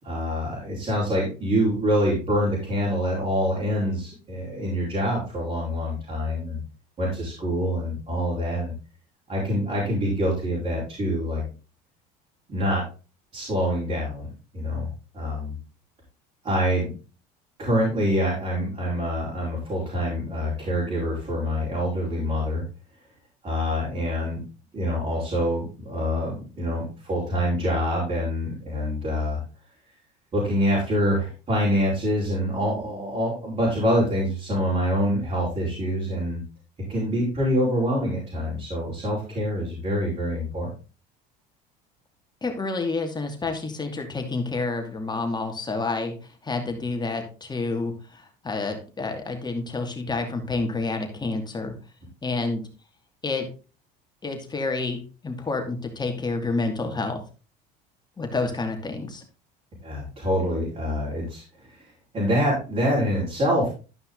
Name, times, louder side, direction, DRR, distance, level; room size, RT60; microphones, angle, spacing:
voice 1, 0.0-6.6 7.0-8.7 9.3-11.4 12.5-12.8 13.3-14.3 14.5-14.9 15.1-15.5 16.4-16.9 17.6-22.6 23.4-24.4 24.7-29.4 30.3-36.4 36.9-40.7 59.8-61.4 61.7-61.8 62.1-63.7, equal, 35° right, -6 dB, 5.2 m, -25 dB
voice 2, 42.4-46.2 46.4-51.7 52.2-52.6 53.2-53.5 54.2-57.2 58.2-59.2, left 3 dB, 20° left, 4 dB, 2.5 m, -29 dB
12.5 x 5.5 x 4.0 m, 0.34 s
supercardioid pair, 90°, 20 cm